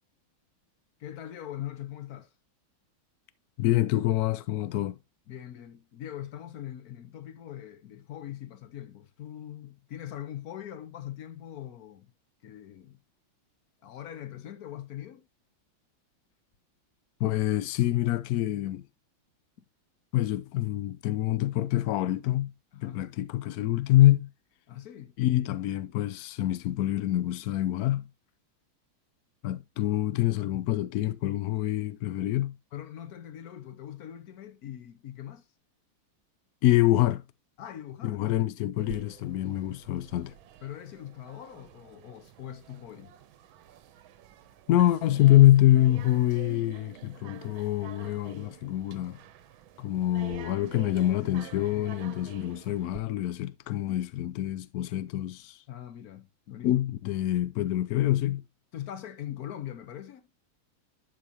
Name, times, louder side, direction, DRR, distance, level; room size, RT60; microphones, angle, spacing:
voice 1, 1.0-2.3 5.3-12.1 12.4-13.0 13.8-15.3 19.6-19.7 22.7-23.0 24.7-25.2 32.7-35.5 37.6-38.4 40.6-43.1 51.7-51.9 55.7-56.8 58.7-60.3, left 11 dB, 55° left, 1.2 m, -42 dB
voice 2, 3.6-5.0 17.2-18.8 20.1-22.5 22.8-24.3 25.2-28.1 29.4-32.5 36.6-37.2 38.0-40.3 44.7-49.2 49.8-55.6 56.6-58.4, left 14 dB, 90° left, 0.8 m, -25 dB
sound 1, 38.8-53.0, right 11 dB, 80° right, 1.5 m, -48 dB
11.5 x 4.9 x 2.8 m
omnidirectional pair, 2.2 m